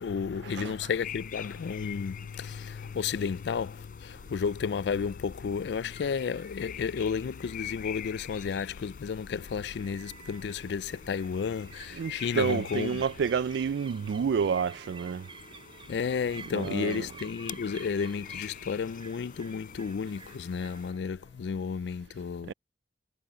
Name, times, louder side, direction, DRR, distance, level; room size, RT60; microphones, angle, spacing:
voice 1, 0.0-13.0 15.9-22.5, left 6 dB, 70° left, 0.3 m, -32 dB
sound 1, 1.0-20.9, left 8 dB, 55° left, 3.8 m, -46 dB
sound 2, 9.3-21.8, right 5 dB, 30° right, 4.7 m, -50 dB
voice 2, 12.0-15.3 16.5-17.1 22.5-22.6, right 6 dB, 75° right, 0.3 m, -29 dB
head